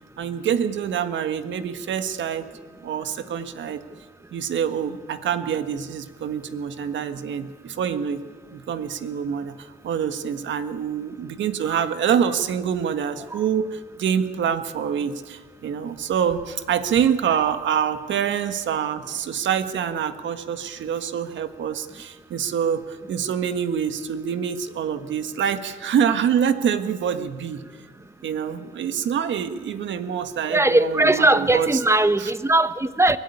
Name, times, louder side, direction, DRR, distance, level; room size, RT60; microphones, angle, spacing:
voice 1, 0.2-2.5 2.8-3.8 4.3-8.2 8.5-27.6 28.2-31.8 32.2-32.3, right 8 dB, 70° right, 10 dB, 1.6 m, -26 dB
voice 2, 30.5-33.2, right 2 dB, 15° right, 13 dB, 1.0 m, -19 dB
23.0 x 15.5 x 9.9 m, 1.5 s
cardioid pair, 90°, 20 cm